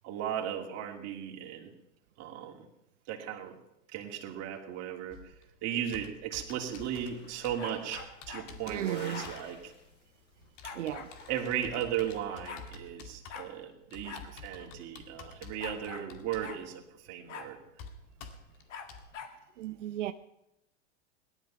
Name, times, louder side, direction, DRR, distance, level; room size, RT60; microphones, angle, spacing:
voice 1, 0.0-1.7 2.2-2.7 3.1-3.6 3.9-5.2 5.6-9.7 11.3-16.8 17.1-17.6, right 10 dB, 45° right, 2.7 m, -36 dB
Computer keyboard, 5.1-19.1, left 4 dB, 55° left, 2.3 m, -51 dB
sound 1, 6.7-10.3 10.7-12.2, left 3 dB, 30° left, 3.9 m, -51 dB
sound 2, 7.6-8.5 9.1-9.3 10.6-11.1 12.0-12.1 12.3-12.7 13.3-13.5 14.0-14.3 14.6-14.7 15.6-16.1 16.4-16.6 17.3-17.5 18.7-19.4, left 6 dB, 80° left, 2.2 m, -44 dB
voice 2, 8.7-9.3 10.6-11.1 19.6-20.1, right 12 dB, 80° right, 0.7 m, -35 dB
18.0 x 12.0 x 5.8 m
hypercardioid pair, 100°, 36 cm